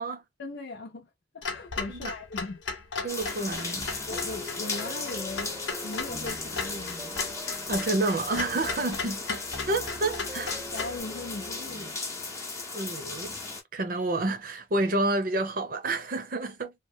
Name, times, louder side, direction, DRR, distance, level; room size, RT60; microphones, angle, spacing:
voice 1, 0.4-2.6 4.1-5.5 5.8-7.2 8.6-8.8 10.4-12.0, left 2 dB, 60° left, 0.5 m, -39 dB
Clock, 1.4-11.0, left 5 dB, 90° left, 0.8 m, -37 dB
voice 2, 3.0-3.9 7.7-10.5 12.7-13.4 13.7-16.7, right 2 dB, 50° right, 0.7 m, -29 dB
sound 1, 3.1-13.6, left 3 dB, 15° left, 0.8 m, -36 dB
sound 2, 3.3-11.9, equal, 15° right, 0.4 m, -44 dB
3.0 x 2.0 x 2.3 m
head